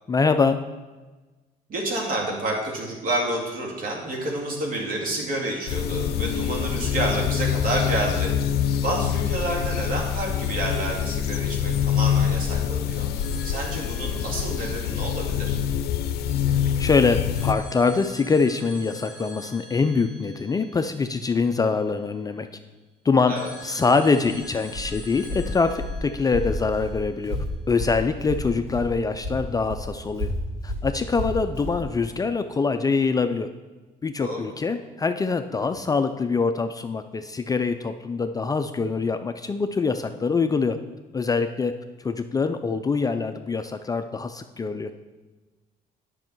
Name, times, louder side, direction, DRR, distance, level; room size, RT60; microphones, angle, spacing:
voice 1, 0.1-0.6 16.8-22.5 23.0-23.3 23.6-27.4 27.7-30.3 30.6-33.5 34.0-40.8 41.1-41.7 42.0-44.9, left 4 dB, 20° left, 8 dB, 0.4 m, -24 dB
voice 2, 1.7-8.3 8.8-13.1 13.4-15.6 23.3-23.5 34.2-34.5, right 2 dB, 55° right, -1 dB, 2.3 m, -29 dB
sound 1, 5.7-17.5, left 9 dB, 70° left, 0.5 m, -25 dB
sound 2, 13.2-16.1 17.3-22.3 23.4-27.5, left 2 dB, 5° right, 2.8 m, -46 dB
Walk footsteps, 24.2-28.9 29.2-31.8, left 1 dB, 35° right, 2.6 m, -31 dB
9.8 x 6.2 x 4.6 m, 1.2 s
cardioid pair, 110°, 17 cm